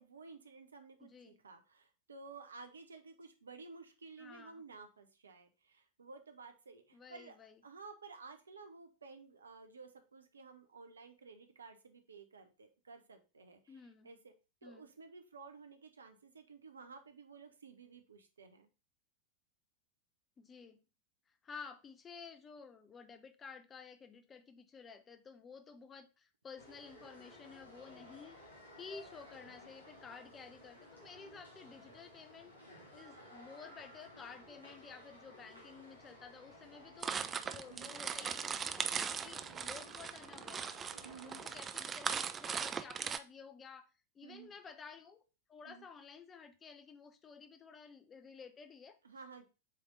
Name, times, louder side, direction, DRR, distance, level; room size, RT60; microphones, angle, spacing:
voice 1, 0.0-7.4 7.6-14.3 14.6-18.7 37.7-37.9 41.0-41.4 44.2-44.5 45.6-45.9 49.0-49.5, right 4 dB, 75° right, 7 dB, 0.9 m, -54 dB
voice 2, 1.0-1.4 4.2-4.6 6.9-7.6 13.7-14.1 14.6-14.9 20.4-20.8 21.3-28.4 28.8-40.8 41.2-43.9 44.1-45.2 45.5-49.0, left 5 dB, 20° left, 9 dB, 0.7 m, -53 dB
sound 1, 26.6-41.6, left 1 dB, 85° left, 3.2 m, -57 dB
sound 2, 37.0-43.2, right 6 dB, 20° right, 0.4 m, -39 dB
7.5 x 3.5 x 3.8 m, 0.31 s
figure-of-eight pair, 90°, 0 cm